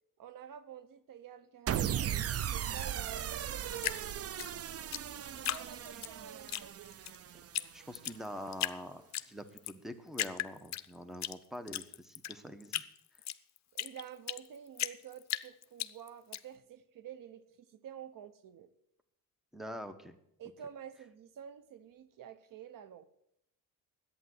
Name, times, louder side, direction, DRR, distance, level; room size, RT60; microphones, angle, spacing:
voice 1, 0.2-4.2 5.4-7.0 13.7-18.7 20.4-23.0, right 9 dB, 70° right, 14 dB, 1.0 m, -49 dB
sound 1, 1.7-8.0, right 10 dB, 45° right, 0.5 m, -37 dB
Drip, 3.8-6.1 6.5-7.2 7.5-7.7 7.9-8.8 9.1-9.8 10.1-11.3 11.7-14.5 14.8-16.4, left 12 dB, 55° left, 0.6 m, -36 dB
voice 2, 7.7-12.8 19.5-20.2, equal, ahead, 11 dB, 1.1 m, -45 dB
11.0 x 8.8 x 7.9 m, 0.75 s
cardioid pair, 105°, 34 cm